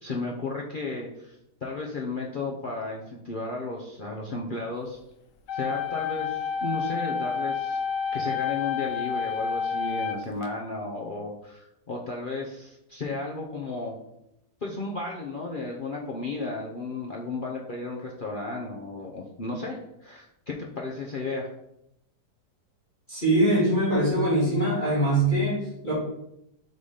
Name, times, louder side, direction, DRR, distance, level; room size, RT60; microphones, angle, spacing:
voice 1, 0.0-1.4 1.6-5.0 5.5-7.8 8.1-13.9 14.6-21.5, left 3 dB, 50° left, -2 dB, 0.6 m, -34 dB
sound 1, 5.5-10.5, left 6 dB, 85° left, 1.3 m, -29 dB
voice 2, 23.1-25.9, right 1 dB, 30° left, -9 dB, 2.1 m, -23 dB
5.6 x 4.0 x 4.9 m, 0.81 s
omnidirectional pair, 1.8 m